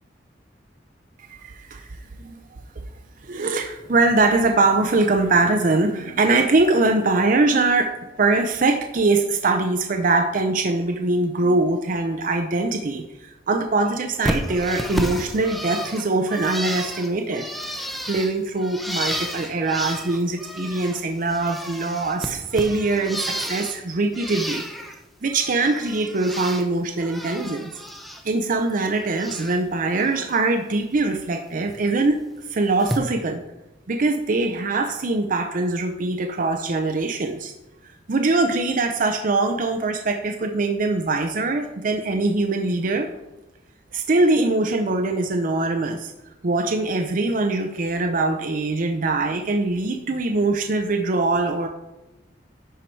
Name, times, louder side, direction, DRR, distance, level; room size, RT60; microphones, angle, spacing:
voice 1, 1.3-1.9 2.2-2.3 3.2-17.5 18.1-24.6 25.2-27.7 28.2-33.4 33.9-37.5 38.1-43.1 43.9-46.1 46.4-51.7, right 3 dB, 50° right, 4 dB, 0.6 m, -22 dB
Bird, 14.2-21.0 21.3-23.8 24.1-25.0 25.3-26.7 27.0-28.2 28.5-29.6 30.0-30.4 31.7-31.8 32.8-33.0, equal, ahead, 0.7 m, -32 dB
11.0 x 4.6 x 4.5 m, 0.99 s
head